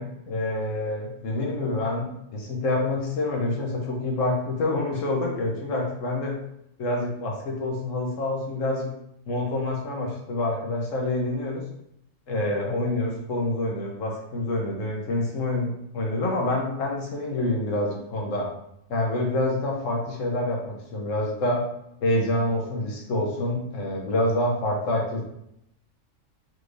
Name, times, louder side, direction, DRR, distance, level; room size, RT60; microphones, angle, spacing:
voice 1, 0.0-6.4 6.8-8.9 9.3-11.6 12.3-18.5 18.9-21.6 22.0-25.2, left 2 dB, 80° left, 0 dB, 1.3 m, -27 dB
4.2 x 3.1 x 2.5 m, 0.78 s
omnidirectional pair, 1.3 m